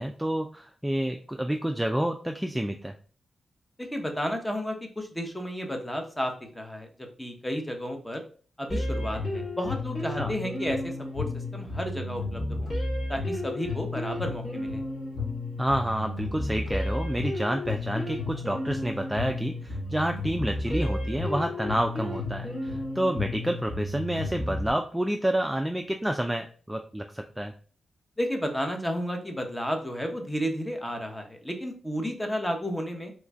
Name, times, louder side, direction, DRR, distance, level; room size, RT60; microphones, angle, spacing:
voice 1, 0.0-2.9 10.2-10.3 15.6-27.5, right 1 dB, 10° right, 4 dB, 0.3 m, -29 dB
voice 2, 3.9-6.9 7.2-8.2 8.6-11.2 11.5-12.7 13.1-14.8 28.2-33.1, equal, 10° left, 4 dB, 0.8 m, -32 dB
sound 1, 8.7-24.7, left 2 dB, 50° left, 1.4 m, -32 dB
3.1 x 2.4 x 3.3 m, 0.42 s
cardioid pair, 55°, 0 cm